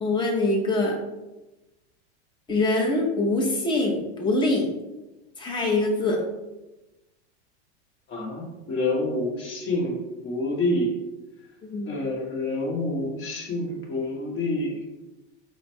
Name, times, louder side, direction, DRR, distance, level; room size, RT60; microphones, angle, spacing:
voice 1, 0.0-1.0 2.5-4.7 5.4-6.2 11.6-11.9, left 2 dB, 15° left, -1 dB, 0.8 m, -24 dB
voice 2, 8.1-10.9 11.9-14.8, left 2 dB, 35° left, -2 dB, 1.2 m, -28 dB
3.8 x 2.1 x 4.4 m, 1.0 s
supercardioid pair, 135°, 33 cm